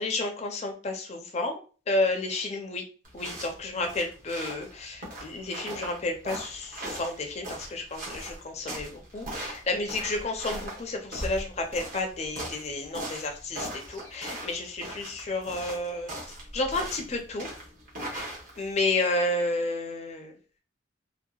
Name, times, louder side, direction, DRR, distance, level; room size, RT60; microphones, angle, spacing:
voice 1, 0.0-1.6 1.9-2.8 3.1-17.5 18.0-18.3 18.6-20.3, left 2 dB, 35° left, 4 dB, 0.4 m, -31 dB
sound 1, 3.0-18.8, right 1 dB, 45° right, 0.8 m, -39 dB
2.7 x 2.1 x 2.3 m, 0.37 s
head